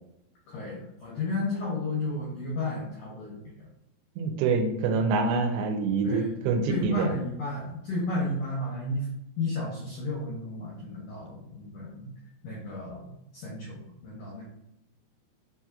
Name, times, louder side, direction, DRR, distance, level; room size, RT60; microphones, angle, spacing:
voice 1, 0.5-3.7 6.0-6.3 6.7-9.1 9.4-12.1 12.4-14.5, left 2 dB, 80° left, -5 dB, 1.8 m, -33 dB
voice 2, 4.2-7.1, right 4 dB, 85° right, 4 dB, 2.6 m, -26 dB
6.2 x 2.9 x 2.4 m, 0.82 s
omnidirectional pair, 5.0 m